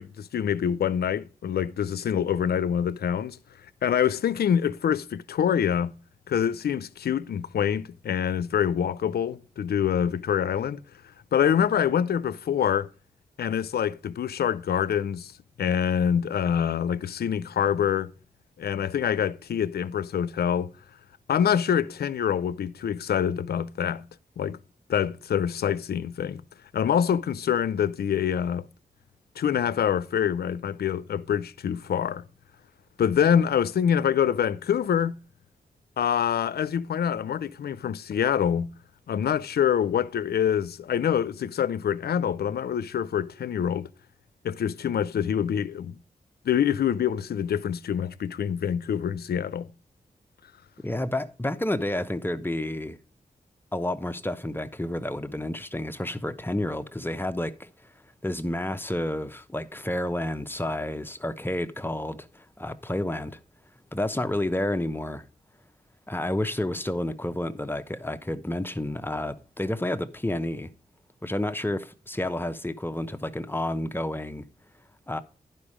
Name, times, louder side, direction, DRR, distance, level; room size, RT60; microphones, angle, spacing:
voice 1, 0.0-3.4 3.8-5.9 6.3-10.8 11.3-12.9 13.4-15.3 15.6-18.1 18.6-20.7 21.3-24.0 24.4-24.6 24.9-26.4 26.7-28.7 29.4-32.3 33.0-35.2 36.0-38.7 39.1-43.9 44.4-46.0 46.5-49.7, left 8 dB, 80° left, 0.5 m, -25 dB
voice 2, 50.8-53.0 53.7-57.7 58.2-63.4 63.9-65.2 66.1-70.7 71.2-74.4 75.1-75.2, left 1 dB, 15° left, 0.9 m, -30 dB
10.5 x 5.4 x 4.9 m
cardioid pair, 50°, 16 cm